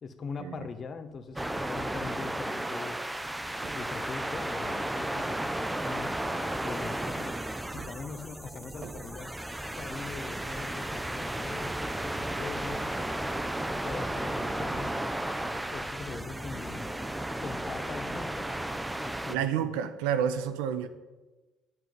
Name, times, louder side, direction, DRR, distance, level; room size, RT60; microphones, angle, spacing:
voice 1, 0.0-3.3 3.7-6.2 6.6-7.4 7.7-9.3 9.7-12.9 13.6-16.9 17.4-18.5 18.9-19.8, left 5 dB, 40° left, 8 dB, 1.6 m, -42 dB
sound 1, 0.8-2.1 3.0-3.3 3.6-4.3 5.8-6.7 7.1-7.3 7.7-9.3 13.7-15.3 16.7-16.8, right 5 dB, 45° right, 1.2 m, -50 dB
sound 2, 1.4-19.4, right 1 dB, 10° right, 0.8 m, -34 dB
voice 2, 19.3-20.9, right 8 dB, 85° right, 11 dB, 1.0 m, -29 dB
9.7 x 7.9 x 9.5 m, 1.2 s
supercardioid pair, 80°, 0 cm